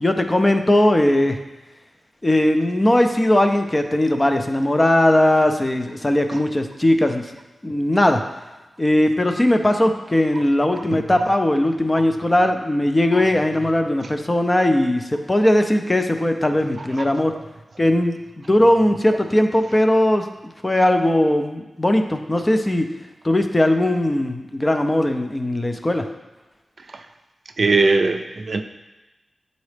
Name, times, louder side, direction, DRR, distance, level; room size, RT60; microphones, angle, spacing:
voice 1, 0.0-1.4 2.2-7.3 7.6-8.2 8.8-17.3 17.8-20.3 20.6-22.9 23.2-26.1, left 1 dB, 20° left, 6 dB, 0.5 m, -19 dB
voice 2, 27.6-28.6, right 3 dB, 55° right, 6 dB, 0.4 m, -19 dB
8.2 x 4.0 x 3.3 m, 1.1 s
wide cardioid pair, 95°, 0 cm